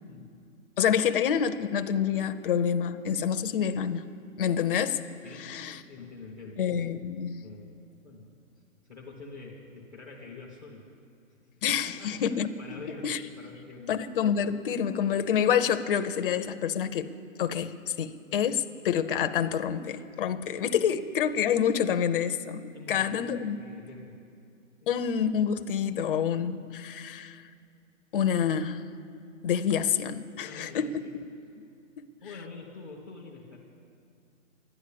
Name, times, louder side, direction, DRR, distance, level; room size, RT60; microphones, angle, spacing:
voice 1, 0.8-4.1 4.4-5.0 5.4-5.8 6.6-7.4 11.6-12.5 13.0-13.2 13.9-17.1 17.4-23.6 24.9-27.4 28.1-28.8 29.4-30.9 32.0-32.1, left 8 dB, 45° left, 9 dB, 0.5 m, -27 dB
voice 2, 5.2-6.6 7.4-7.8 8.0-8.3 8.9-10.9 11.4-14.0 22.7-24.2 24.8-25.0 30.4-31.2 32.2-33.6, left 3 dB, ahead, -6 dB, 0.5 m, -46 dB
12.5 x 9.8 x 8.5 m, 2.4 s
hypercardioid pair, 160°, 39 cm